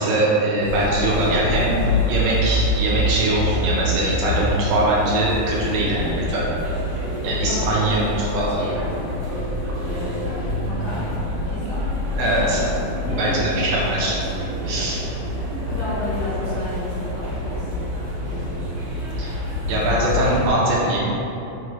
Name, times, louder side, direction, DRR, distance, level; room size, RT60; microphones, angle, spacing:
voice 1, 0.0-1.7 2.1-6.5 7.2-8.6 12.2-12.6 13.2-14.1 14.6-15.0 19.2-19.3 19.7-21.1, right 2 dB, 75° right, -5 dB, 2.3 m, -22 dB
sound 1, 0.6-20.5, left 1 dB, 55° right, 1.7 m, -26 dB
voice 2, 1.5-2.1 7.4-8.9 9.8-11.8 12.2-12.7 13.0-13.4 14.7-14.9 15.2-17.9 18.3-18.7, left 1 dB, 70° left, -12 dB, 1.3 m, -32 dB
6.4 x 3.2 x 4.7 m, 2.9 s
omnidirectional pair, 4.5 m